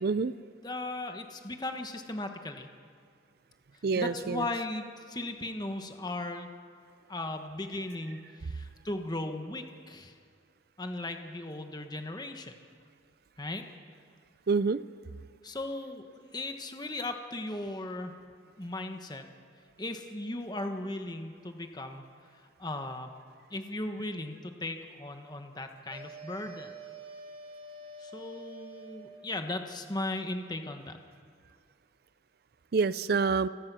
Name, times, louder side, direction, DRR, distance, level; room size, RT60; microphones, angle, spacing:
voice 1, 0.0-0.3 3.8-4.5 14.5-14.8 32.7-33.5, right 4 dB, 50° right, 15 dB, 0.5 m, -27 dB
voice 2, 0.6-2.7 3.9-6.5 7.1-10.1 10.8-12.5 13.4-13.6 15.4-18.1 18.6-19.2 19.8-22.1 22.6-23.1 23.5-26.7 28.0-31.0, left 2 dB, 20° left, 5 dB, 1.3 m, -37 dB
sound 1, 25.9-29.4, right 2 dB, 25° right, 1.5 m, -47 dB
29.0 x 17.5 x 6.2 m, 2.1 s
head